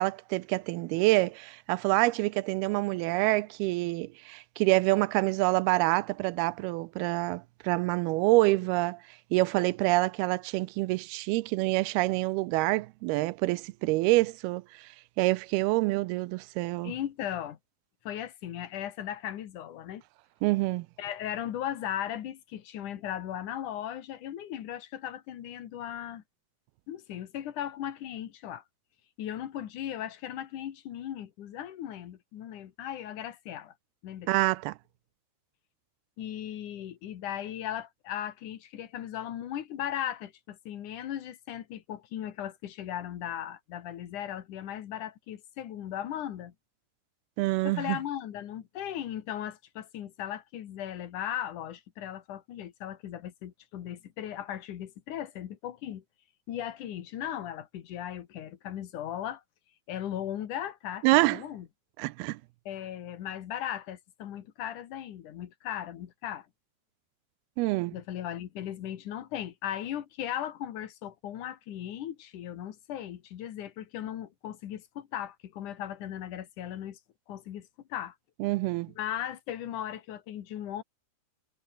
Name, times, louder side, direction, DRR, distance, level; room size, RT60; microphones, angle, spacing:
voice 1, 0.0-9.0 9.3-14.9 15.2-16.9 20.4-20.9 34.3-34.8 47.4-48.0 61.0-61.4 62.0-62.4 67.6-68.0 78.4-78.9, right 21 dB, 80° right, 2.4 m, -26 dB
voice 2, 16.8-17.6 18.0-20.0 21.0-26.2 26.9-28.6 29.2-33.7 34.0-34.3 36.2-46.5 47.6-56.0 56.5-59.4 59.9-61.7 62.7-66.5 67.9-77.0 77.3-78.2 79.0-80.8, left 11 dB, 60° left, 2.7 m, -37 dB
omnidirectional pair, 4.8 m